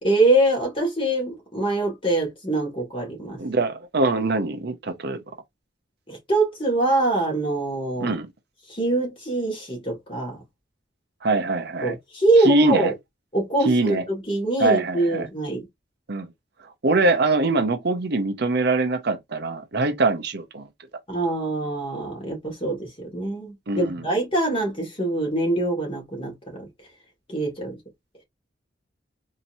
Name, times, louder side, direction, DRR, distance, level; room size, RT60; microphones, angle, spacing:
voice 1, 0.0-3.4 6.1-8.1 8.7-10.4 11.8-12.9 13.3-15.7 21.1-26.7 27.3-27.8, right 2 dB, 30° left, 1.9 m, -24 dB
voice 2, 3.4-5.2 8.0-8.3 11.2-12.0 12.4-12.9 13.6-14.0 14.6-15.3 16.1-16.3 16.8-20.7 23.7-24.0, right 2 dB, 60° right, 0.7 m, -23 dB
4.2 x 2.9 x 2.6 m
head